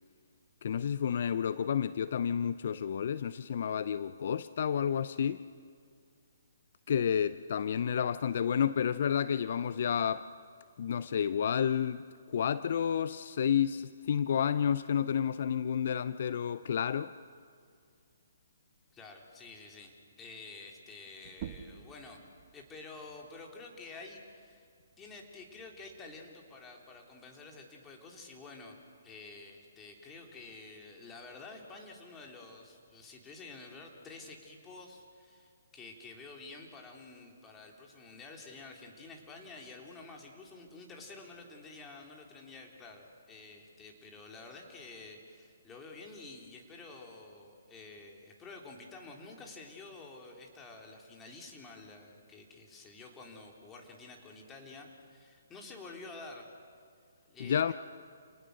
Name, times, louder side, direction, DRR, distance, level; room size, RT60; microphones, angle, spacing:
voice 1, 0.6-5.4 6.9-10.3 10.8-17.1 57.4-57.7, left 8 dB, 55° left, 0.5 m, -30 dB
voice 2, 18.9-22.2 22.5-24.7 25.0-28.8 29.0-56.4 57.3-57.7, left 3 dB, 15° left, 3.4 m, -49 dB
sound 1, 21.2-26.4, right 9 dB, 40° right, 1.2 m, -51 dB
29.5 x 19.0 x 6.6 m
hypercardioid pair, 140°, 0 cm